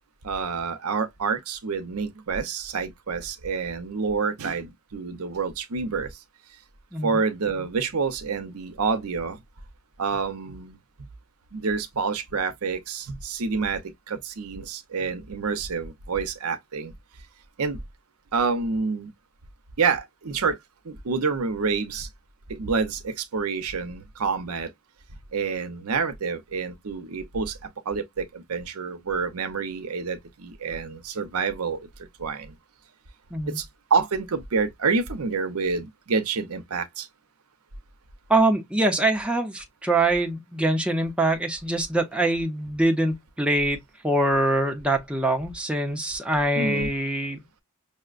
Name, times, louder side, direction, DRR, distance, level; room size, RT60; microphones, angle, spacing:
voice 1, 0.2-6.1 7.0-9.4 10.0-10.8 11.5-13.8 14.1-16.9 17.6-17.8 18.3-19.1 19.8-20.6 20.8-22.1 22.5-24.7 25.3-27.6 27.9-31.9 32.2-32.5 33.6-33.7 33.9-37.1 46.6-46.9, right 5 dB, 85° right, 0.7 m, -28 dB
voice 2, 38.3-43.8 44.0-47.4, right 2 dB, 5° right, 0.6 m, -24 dB
5.5 x 2.1 x 2.4 m
head